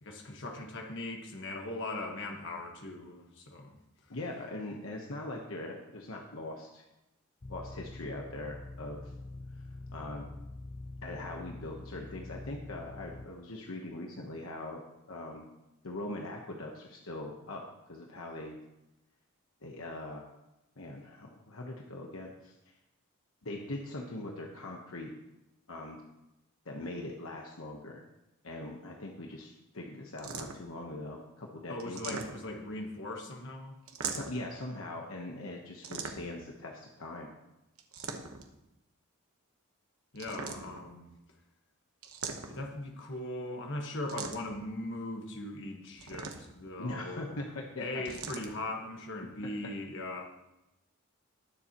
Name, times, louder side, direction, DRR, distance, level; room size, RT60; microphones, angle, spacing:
voice 1, 0.0-3.8 31.7-33.8 40.1-41.1 42.5-47.4 47.8-50.2, left 2 dB, 55° left, 2 dB, 1.5 m, -39 dB
voice 2, 4.1-6.8 7.5-9.1 9.9-10.3 11.0-14.8 15.1-15.5 15.8-18.6 19.6-20.3 20.8-22.5 23.4-25.1 25.7-26.0 26.6-28.0 28.4-32.2 34.1-37.3 46.8-48.2, left 2 dB, 70° left, 0 dB, 1.1 m, -41 dB
sound 1, 7.4-13.3, left 2 dB, 30° left, 0.5 m, -45 dB
sound 2, 30.2-30.8 31.8-32.7 33.9-34.5 35.8-36.5 37.8-38.5 40.1-40.9 42.0-42.8 44.1-44.6 46.0-46.7 48.0-48.5, right 5 dB, 70° right, 1.1 m, -40 dB
20.0 x 7.1 x 3.0 m, 0.93 s
head